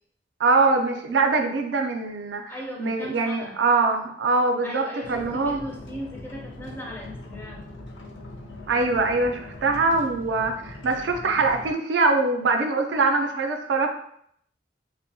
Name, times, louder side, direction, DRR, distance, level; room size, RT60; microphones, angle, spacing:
voice 1, 0.4-2.5 2.8-4.8 5.1-5.6 8.7-13.9, right 3 dB, 70° right, 4 dB, 0.4 m, -23 dB
voice 2, 2.5-3.6 4.6-7.7, equal, 10° left, -1 dB, 0.4 m, -37 dB
sound 1, 5.0-11.7, left 1 dB, 90° left, 0.5 m, -41 dB
2.7 x 2.1 x 2.6 m, 0.68 s
head